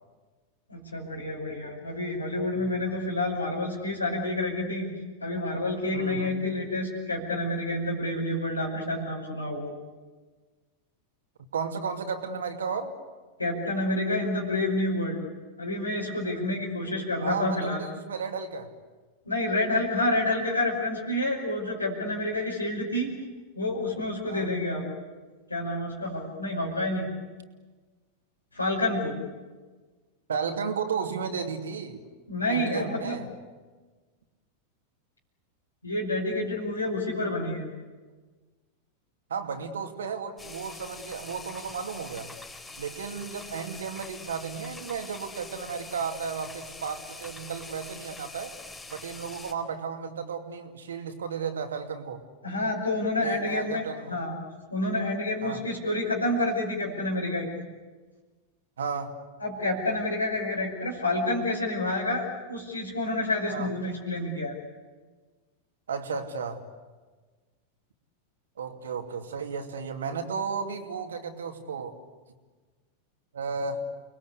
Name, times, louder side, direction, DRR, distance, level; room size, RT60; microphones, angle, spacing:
voice 1, 0.7-4.9 5.2-9.7 13.4-15.2 15.6-17.8 19.2-23.1 23.6-24.8 25.5-27.1 28.5-29.2 32.3-33.2 35.8-37.7 52.4-53.8 54.1-54.3 54.7-57.6 59.4-64.6, left 1 dB, 85° left, -4 dB, 5.7 m, -29 dB
voice 2, 5.9-6.3 11.5-12.9 17.2-18.7 24.3-24.5 30.3-32.0 32.5-33.3 39.3-42.3 42.8-48.5 48.9-52.2 53.2-54.1 55.4-55.6 58.8-59.2 63.5-63.7 65.9-66.6 68.6-71.9 73.3-73.8, right 5 dB, 65° right, 5 dB, 2.7 m, -33 dB
sound 1, 40.4-49.5, left 3 dB, 15° left, 4.1 m, -44 dB
30.0 x 21.5 x 8.4 m, 1.4 s
figure-of-eight pair, 90°, 0 cm